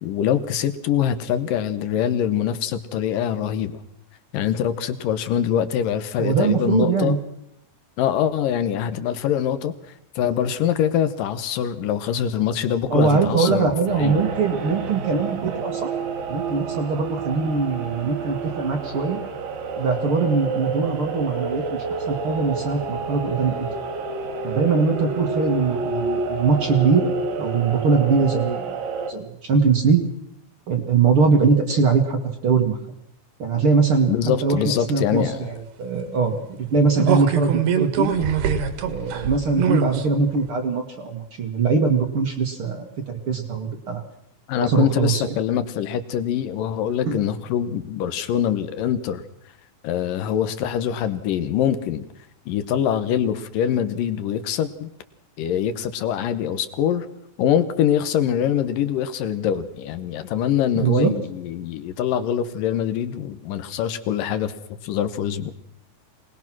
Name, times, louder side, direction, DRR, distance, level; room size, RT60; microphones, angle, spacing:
voice 1, 0.0-3.8 4.3-7.2 8.0-9.7 10.2-13.7 14.0-14.2 34.1-35.5 44.5-49.2 49.8-52.1 52.5-54.9 55.4-57.1 57.4-64.5 64.8-65.5, left 9 dB, 70° left, 11 dB, 2.2 m, -24 dB
voice 2, 6.2-7.2 12.9-15.9 16.3-19.2 19.8-23.7 24.4-27.1 27.4-28.7 29.1-30.0 30.7-32.8 33.4-34.1 34.4-38.1 38.9-44.0 44.6-45.2 47.0-47.2 60.7-61.1, right 5 dB, 50° right, 4 dB, 1.7 m, -21 dB
sound 1, 13.9-29.1, right 4 dB, 85° right, 4.3 m, -29 dB
sound 2, 37.0-40.1 40.5-40.6, right 8 dB, 65° right, 3.3 m, -23 dB
25.5 x 20.0 x 6.1 m, 0.72 s
omnidirectional pair, 5.2 m